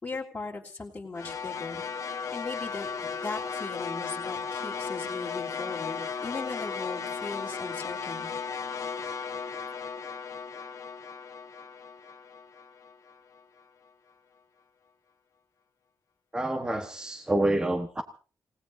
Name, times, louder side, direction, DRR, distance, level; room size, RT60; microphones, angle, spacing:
voice 1, 0.0-1.8 2.3-8.3, left 3 dB, 20° left, 3.2 m, -38 dB
sound 1, 1.2-13.4, left 5 dB, 55° left, 1.2 m, -36 dB
voice 2, 16.3-18.0, right 1 dB, 10° right, 1.2 m, -27 dB
27.5 x 18.0 x 2.7 m
wide cardioid pair, 140°, 7 cm